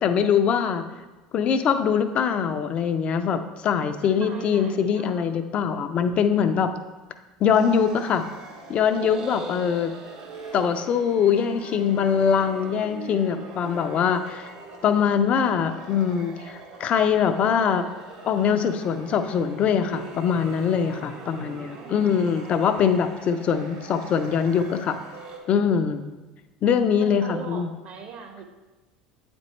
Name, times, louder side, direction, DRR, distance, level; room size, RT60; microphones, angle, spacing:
voice 1, 0.0-0.8 1.3-6.7 7.4-8.3 8.7-9.9 10.5-14.5 14.8-17.9 18.2-25.0 25.5-26.0 26.6-27.7, left 7 dB, 45° left, 9 dB, 0.5 m, -23 dB
voice 2, 4.0-5.4 20.9-22.1 27.0-28.4, right 5 dB, 50° right, 3 dB, 1.3 m, -41 dB
sound 1, 7.5-25.4, right 3 dB, 65° right, 1.5 m, -42 dB
8.9 x 4.3 x 3.1 m, 1.1 s
hypercardioid pair, 75°, 3 cm